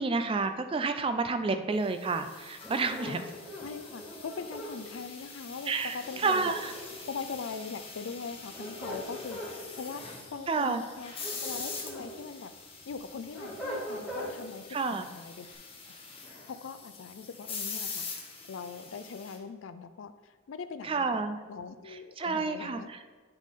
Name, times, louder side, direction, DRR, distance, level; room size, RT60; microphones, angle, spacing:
voice 1, 0.0-3.2 5.7-6.7 10.5-10.8 14.7-15.1 20.8-21.4 22.2-23.1, right 4 dB, 25° right, 8 dB, 0.3 m, -30 dB
sound 1, 1.9-19.4, left 4 dB, 25° left, 1.0 m, -44 dB
sound 2, 2.6-4.7 6.0-7.1 8.3-9.5 11.0-12.1 12.5-14.3, equal, ahead, 1.8 m, -40 dB
voice 2, 3.6-6.5 7.1-10.0 10.3-11.1 11.4-12.5 12.9-15.5 16.5-18.1 18.5-22.9, left 5 dB, 75° left, 11 dB, 0.4 m, -41 dB
9.0 x 3.7 x 4.1 m, 1.4 s
head